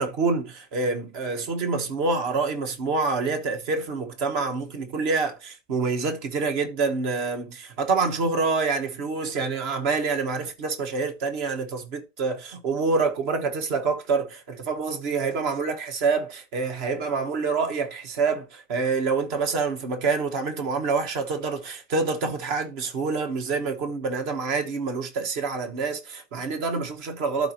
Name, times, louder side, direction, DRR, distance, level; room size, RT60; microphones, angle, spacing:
voice 1, 0.0-27.5, right 4 dB, 50° right, 1.4 m, -27 dB
12.0 x 4.2 x 2.9 m
omnidirectional pair, 1.4 m